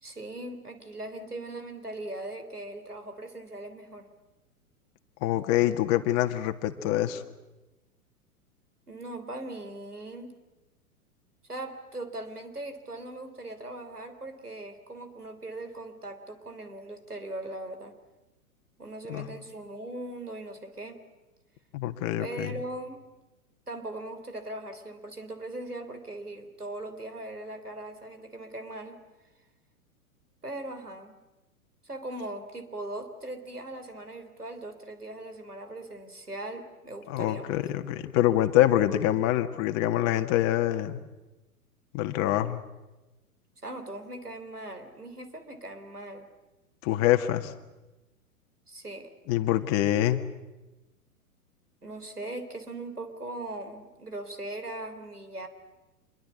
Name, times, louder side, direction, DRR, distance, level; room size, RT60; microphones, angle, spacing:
voice 1, 0.0-4.1 8.9-10.3 11.5-17.9 18.8-21.0 22.2-23.1 23.7-29.0 30.4-31.1 31.8-37.6 43.6-46.3 48.7-49.1 51.8-55.5, right 2 dB, 90° right, 8 dB, 3.6 m, -39 dB
voice 2, 5.2-7.2 19.1-19.3 21.7-22.5 37.1-41.0 41.9-42.6 46.8-47.5 49.3-50.2, left 13 dB, 35° left, 7 dB, 1.9 m, -25 dB
26.5 x 22.5 x 8.4 m, 1.1 s
figure-of-eight pair, 105°, 44 cm